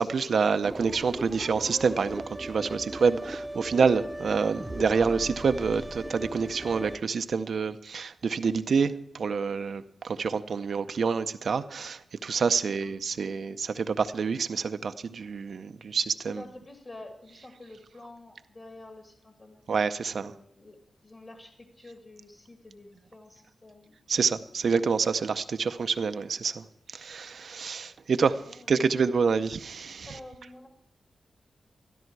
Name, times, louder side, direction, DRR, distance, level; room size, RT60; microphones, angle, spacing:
voice 1, 0.0-16.4 19.7-20.3 24.1-30.1, right 5 dB, 70° right, 0.6 m, -27 dB
sound 1, 0.6-7.0, right 1 dB, 10° right, 0.8 m, -38 dB
voice 2, 12.5-12.9 16.3-19.6 20.0-20.8 21.0-24.8 28.3-28.7 29.3-29.4 30.0-30.7, left 2 dB, 35° left, 2.1 m, -49 dB
13.5 x 12.5 x 4.7 m
wide cardioid pair, 85°, 0 cm